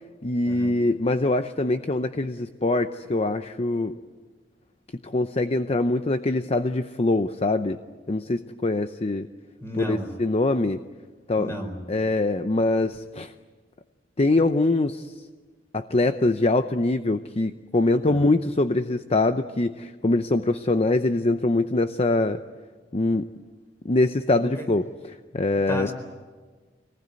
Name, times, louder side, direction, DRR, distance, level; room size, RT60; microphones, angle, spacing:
voice 1, 0.2-4.0 5.0-7.8 8.1-9.3 9.8-10.8 11.3-11.5 11.9-13.3 14.2-15.1 15.7-22.4 22.9-23.3 23.8-24.8 25.3-25.9, left 2 dB, 35° left, 10 dB, 0.7 m, -23 dB
voice 2, 9.6-10.1 11.4-11.8 18.1-18.3 24.4-24.7 25.7-25.9, equal, 15° left, 4 dB, 4.4 m, -33 dB
25.5 x 19.5 x 9.5 m, 1.4 s
head